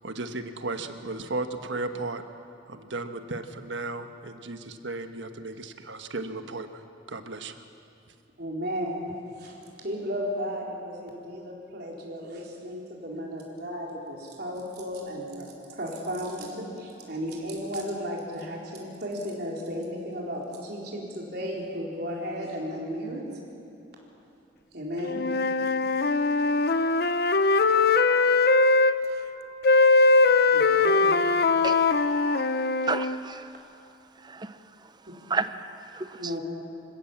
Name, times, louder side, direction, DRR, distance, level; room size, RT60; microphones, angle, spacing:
voice 1, 0.0-2.2 2.7-6.8 7.1-7.6, right 2 dB, 80° right, 8 dB, 1.3 m, -35 dB
voice 2, 8.4-9.1 9.3-23.2 24.7-25.2 30.5-31.2 36.2-36.4, equal, 60° right, -2 dB, 4.3 m, -34 dB
Wind instrument woodwind instrument, 25.0-29.0 29.6-33.2, left 3 dB, 55° left, 0.8 m, -21 dB
voice 3, 32.8-33.5 34.2-34.6 35.3-36.3, right 4 dB, 25° right, 12 dB, 0.7 m, -32 dB
27.0 x 16.0 x 7.4 m, 2.7 s
head